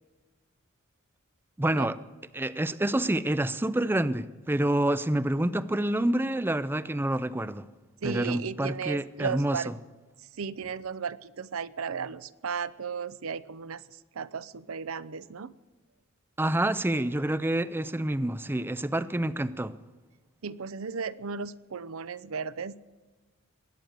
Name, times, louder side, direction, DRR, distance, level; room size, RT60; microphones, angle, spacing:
voice 1, 1.6-2.0 2.3-7.6 8.0-9.6 16.4-19.7, right 1 dB, 10° right, 0.5 m, -27 dB
voice 2, 8.0-9.7 10.4-13.8 14.1-15.6 20.4-22.8, right 6 dB, 75° right, 0.6 m, -35 dB
22.0 x 9.2 x 6.6 m
head